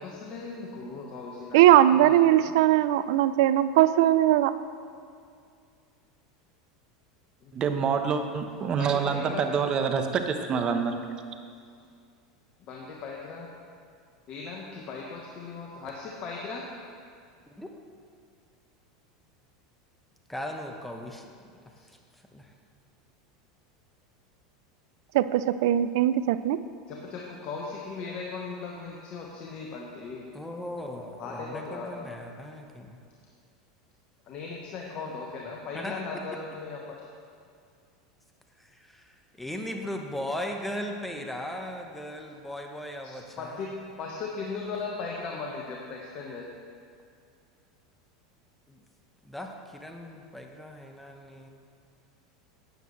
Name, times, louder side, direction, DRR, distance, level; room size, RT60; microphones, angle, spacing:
voice 1, 0.0-2.5 8.8-9.5 12.6-13.5 14.3-16.7 21.8-21.9 26.9-30.2 31.2-31.9 34.3-37.0 43.0-43.1 43.4-43.7 44.0-46.5, left 4 dB, 50° left, -1 dB, 1.2 m, -38 dB
voice 2, 1.5-4.5 25.1-26.6, right 12 dB, 70° right, 14 dB, 0.4 m, -20 dB
voice 3, 7.5-11.0, right 6 dB, 35° right, 6 dB, 1.0 m, -27 dB
voice 4, 20.3-21.3 22.3-22.5 30.3-33.0 35.7-36.0 38.6-43.7 48.7-48.8 49.2-51.5, left 1 dB, 5° left, 2 dB, 1.1 m, -38 dB
12.0 x 9.3 x 3.2 m, 2.3 s
hypercardioid pair, 90°, 2 cm